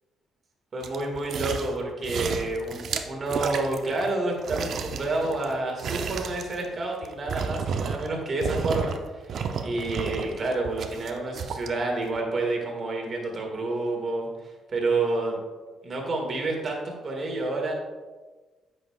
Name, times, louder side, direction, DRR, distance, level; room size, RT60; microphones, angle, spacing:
voice 1, 0.7-9.3 9.6-15.4 15.8-17.7, right 2 dB, 45° right, 1 dB, 1.9 m, -29 dB
sound 1, 0.8-1.8 2.0-4.1 4.4-8.1 8.4-9.0 9.3-11.7 12.2-12.3, right 5 dB, 65° right, 0.6 m, -32 dB
9.3 x 6.4 x 2.4 m, 1.3 s
cardioid pair, 90°, 0 cm